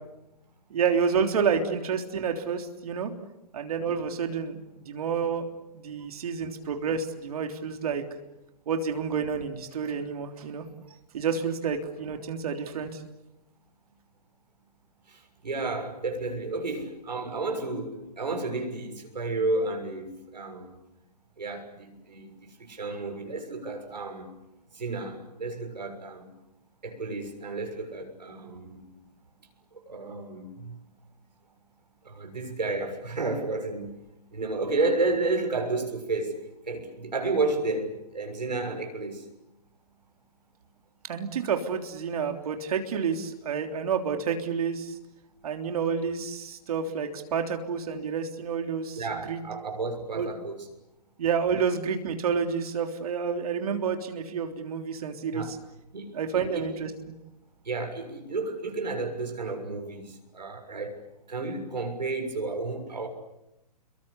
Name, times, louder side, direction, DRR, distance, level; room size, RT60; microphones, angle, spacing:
voice 1, 0.7-3.1 3.5-5.5 5.7-8.0 8.7-10.6 11.1-13.0 41.1-45.0 45.4-49.4 50.1-50.3 51.2-55.6 56.1-56.9, right 6 dB, 60° right, 5 dB, 3.4 m, -29 dB
voice 2, 15.1-20.8 21.4-24.3 24.7-26.3 26.8-28.9 29.7-30.8 32.0-33.9 34.3-39.3 48.9-50.7 55.3-55.6 55.9-56.6 57.6-61.0 61.3-63.1, right 3 dB, 85° right, 4 dB, 6.8 m, -32 dB
29.5 x 23.0 x 8.3 m, 0.90 s
hypercardioid pair, 130°, 21 cm